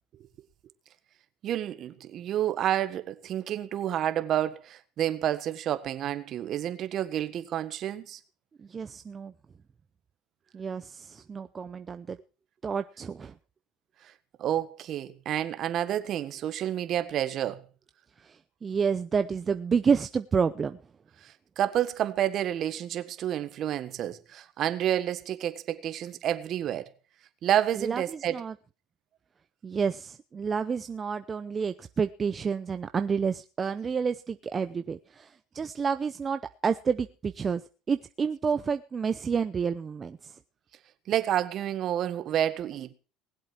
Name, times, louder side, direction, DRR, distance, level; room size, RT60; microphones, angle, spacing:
voice 1, 1.4-8.2 14.4-17.6 21.2-26.9 27.4-28.4 41.1-42.9, right 11 dB, 45° right, 1.5 m, -29 dB
voice 2, 8.6-9.3 10.5-12.2 12.6-13.3 18.2-20.8 27.8-28.5 29.6-37.6 37.9-40.4, right 6 dB, 25° right, 0.7 m, -29 dB
20.0 x 7.9 x 6.0 m
supercardioid pair, 115°, 0 cm